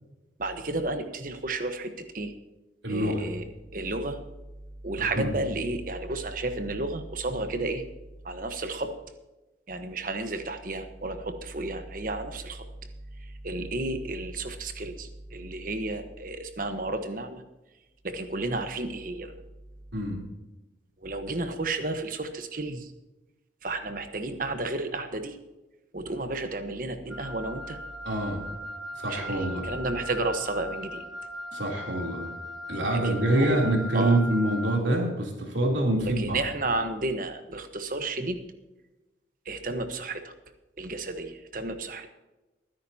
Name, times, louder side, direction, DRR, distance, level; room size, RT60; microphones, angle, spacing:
voice 1, 0.4-2.3 2.9-3.4 3.7-4.2 4.8-7.8 8.2-8.9 9.7-12.7 13.2-17.4 18.0-19.3 21.0-22.9 23.6-25.4 25.9-27.8 29.1-31.0 32.9-34.2 36.0-38.4 39.4-40.3 40.8-42.1, right 2 dB, 45° right, 8 dB, 1.2 m, -32 dB
voice 2, 2.8-3.2 5.0-5.3 19.9-20.2 28.0-28.4 28.9-29.7 31.5-32.3 32.7-36.4, right 1 dB, 75° right, 0 dB, 3.4 m, -26 dB
Wind instrument woodwind instrument, 27.1-34.9, left 1 dB, ahead, 1.2 m, -39 dB
22.5 x 10.5 x 2.9 m, 1.1 s
head